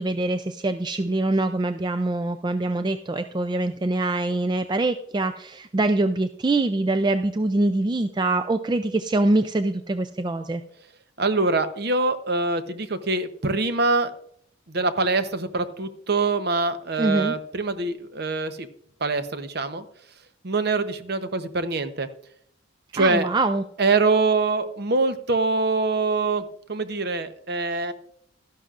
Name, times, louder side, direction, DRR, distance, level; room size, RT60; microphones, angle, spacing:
voice 1, 0.0-10.6 17.0-17.3 22.9-23.6, right 2 dB, 20° right, 9 dB, 0.3 m, -24 dB
voice 2, 11.2-14.1 14.7-18.7 19.0-19.8 20.4-22.1 22.9-23.3 23.8-27.9, right 3 dB, 50° right, 10 dB, 0.8 m, -24 dB
13.0 x 11.0 x 2.5 m, 0.69 s
head